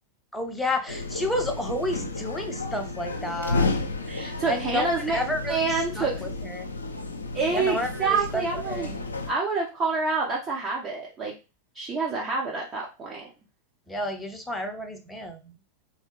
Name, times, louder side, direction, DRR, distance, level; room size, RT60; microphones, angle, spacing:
voice 1, 0.3-3.7 4.5-6.7 7.5-9.0 13.9-15.6, left 1 dB, 5° left, 4 dB, 0.6 m, -31 dB
sound 1, 0.9-9.3, left 3 dB, 75° left, 0.5 m, -32 dB
voice 2, 4.1-5.2 5.5-6.1 7.3-8.9 9.3-11.3 11.7-13.3, right 4 dB, 30° right, -3 dB, 0.8 m, -27 dB
3.5 x 3.1 x 3.1 m, 0.30 s
figure-of-eight pair, 90°, 0 cm